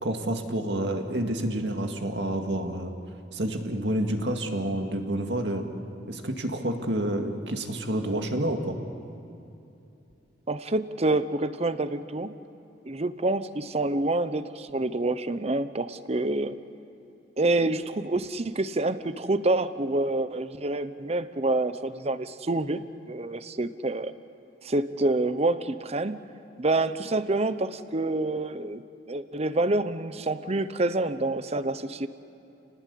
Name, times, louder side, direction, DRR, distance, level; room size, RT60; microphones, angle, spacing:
voice 1, 0.0-2.9 3.3-5.7 6.1-8.8, right 1 dB, 75° right, 4 dB, 2.1 m, -29 dB
voice 2, 10.5-12.3 12.8-16.6 17.4-24.1 24.6-26.2 26.6-28.8 29.1-32.1, right 2 dB, 35° right, 12 dB, 0.9 m, -27 dB
29.5 x 19.0 x 8.4 m, 2.8 s
head